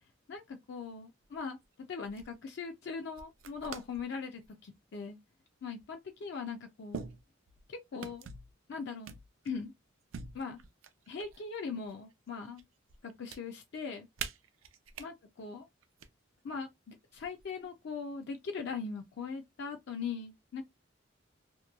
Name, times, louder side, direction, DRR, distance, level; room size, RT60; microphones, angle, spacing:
voice 1, 0.3-1.6 1.9-5.2 5.6-7.1 7.7-8.3 8.7-9.1 9.4-9.7 10.3-10.6 11.1-12.6 13.0-14.1 15.0-15.6 16.4-20.6, left 5 dB, 60° left, 0.4 m, -40 dB
sound 1, 1.2-1.7 2.0-2.3 3.2-4.0 4.4-4.8 5.8-5.9 6.9-7.7 8.0-8.5 9.0-9.6 10.1-11.5 11.8-12.6 12.9-13.4 14.2-15.1 15.8-16.1 17.1-17.6, right 6 dB, 85° right, 0.4 m, -45 dB
2.9 x 2.2 x 2.3 m
head